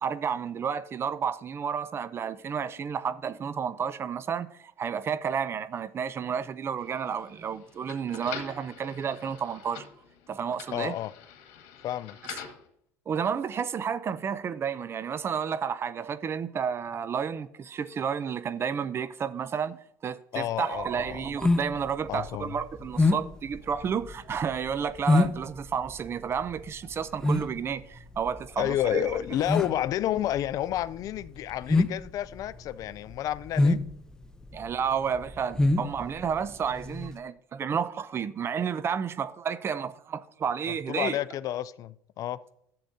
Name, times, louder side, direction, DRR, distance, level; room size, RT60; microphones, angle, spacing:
voice 1, 0.0-9.9 10.3-11.0 13.1-29.1 34.5-41.2, right 7 dB, 35° right, 0.5 m, -31 dB
sound 1, 6.8-12.7, left 7 dB, 75° left, 1.8 m, -45 dB
voice 2, 10.7-11.1 11.8-12.2 20.3-21.2 22.1-22.6 28.6-33.8 40.7-42.4, left 12 dB, 55° left, 0.4 m, -30 dB
sound 2, 20.8-37.2, left 2 dB, 10° left, 0.7 m, -27 dB
11.5 x 7.7 x 2.7 m
supercardioid pair, 95°, 7 cm